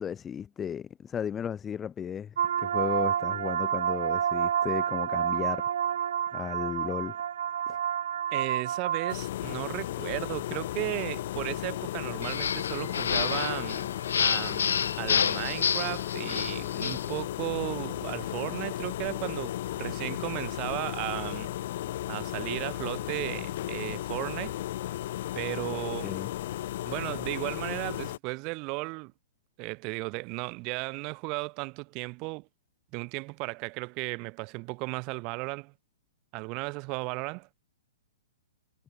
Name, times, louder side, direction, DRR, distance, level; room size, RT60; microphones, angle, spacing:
voice 1, 0.0-5.7 6.3-7.1 26.0-26.3, left 8 dB, 10° left, 0.5 m, -34 dB
sound 1, 2.4-9.1, right 9 dB, 60° right, 1.7 m, -29 dB
voice 2, 8.3-13.9 14.2-21.5 22.1-24.6 25.4-26.1 26.8-29.1 29.6-32.5 32.9-35.7 36.3-37.5, right 29 dB, 25° right, 3.7 m, -35 dB
sound 2, 9.1-28.2, left 14 dB, 40° left, 2.0 m, -35 dB
sound 3, 12.2-17.1, left 7 dB, 85° left, 0.7 m, -29 dB
hypercardioid pair, 175°, 0 cm